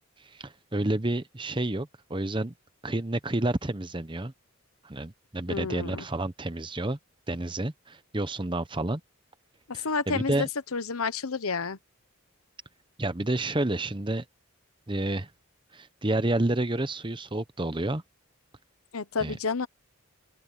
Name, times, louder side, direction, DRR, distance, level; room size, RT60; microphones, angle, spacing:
voice 1, 0.2-2.5 2.8-4.3 4.8-7.0 7.3-9.0 9.7-10.5 13.0-14.2 14.9-15.3 15.7-18.0 19.2-19.4, right 1 dB, 20° right, 0.9 m, -30 dB
voice 2, 5.5-6.0 9.7-11.8 18.9-19.7, left 4 dB, 80° left, 1.0 m, -30 dB
open air
head